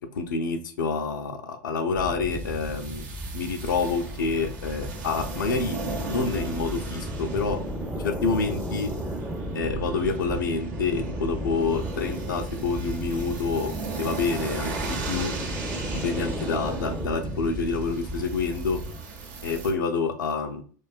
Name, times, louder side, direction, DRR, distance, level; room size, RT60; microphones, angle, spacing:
voice 1, 0.1-3.1 3.3-7.6 7.9-8.9 9.5-15.3 16.0-18.8 19.4-20.6, left 4 dB, 85° left, 7 dB, 0.4 m, -28 dB
sound 1, 1.9-19.0, right 1 dB, 5° right, 0.5 m, -34 dB
sound 2, 2.3-19.7, right 4 dB, 70° right, 0.7 m, -39 dB
2.5 x 2.2 x 2.3 m, 0.43 s
hypercardioid pair, 90°, 10 cm